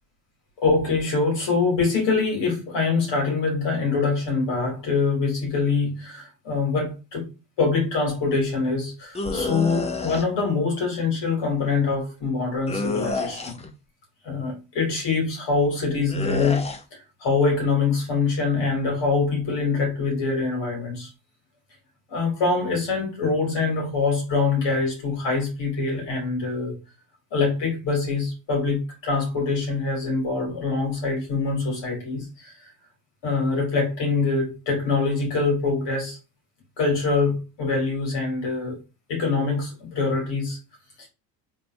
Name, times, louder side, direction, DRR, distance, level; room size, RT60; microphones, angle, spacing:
voice 1, 0.6-7.3 7.6-13.6 14.2-16.6 16.9-21.1 22.1-26.8 27.3-32.7 33.2-36.2 36.8-38.8 39.1-40.6 41.0-41.1, left 4 dB, 55° left, 2.5 m, -24 dB
sound 1, 9.1-10.2 12.7-13.7 16.1-16.8, left 3 dB, 15° left, 0.5 m, -28 dB
4.0 x 3.6 x 2.6 m
supercardioid pair, 100°, 49 cm